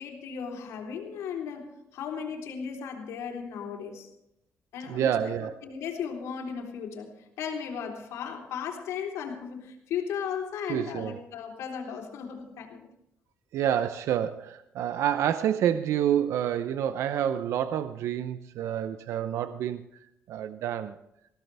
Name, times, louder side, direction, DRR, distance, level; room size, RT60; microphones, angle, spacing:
voice 1, 0.0-4.1 4.7-5.3 5.6-7.1 7.4-12.8, left 7 dB, 80° left, 1 dB, 3.5 m, -36 dB
voice 2, 4.9-5.5 10.7-11.2 13.5-19.8 20.3-20.9, right 10 dB, 75° right, 11 dB, 0.6 m, -28 dB
20.0 x 16.0 x 3.4 m, 0.82 s
cardioid pair, 120°, 5 cm